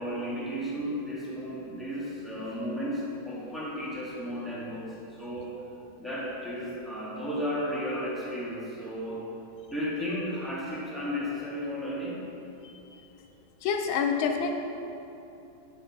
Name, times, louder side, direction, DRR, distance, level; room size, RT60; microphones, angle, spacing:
voice 1, 0.0-5.5 6.0-9.2 9.7-12.2, equal, ahead, -8 dB, 2.0 m, -34 dB
voice 2, 12.6-13.1 13.6-14.5, left 6 dB, 85° left, 4 dB, 1.4 m, -28 dB
9.0 x 5.6 x 5.9 m, 2.9 s
omnidirectional pair, 2.1 m